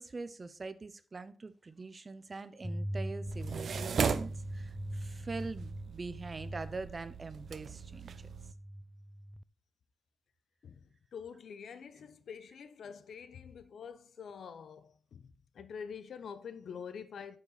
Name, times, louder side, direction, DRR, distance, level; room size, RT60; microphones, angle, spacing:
voice 1, 0.0-8.3, right 3 dB, 30° right, 0.7 m, -43 dB
sound 1, 2.6-9.4, equal, ahead, 0.3 m, -42 dB
sound 2, 3.3-8.5, right 6 dB, 65° right, 0.7 m, -38 dB
voice 2, 10.6-17.4, left 6 dB, 80° left, 0.9 m, -46 dB
9.4 x 7.2 x 4.1 m
wide cardioid pair, 160°, 0 cm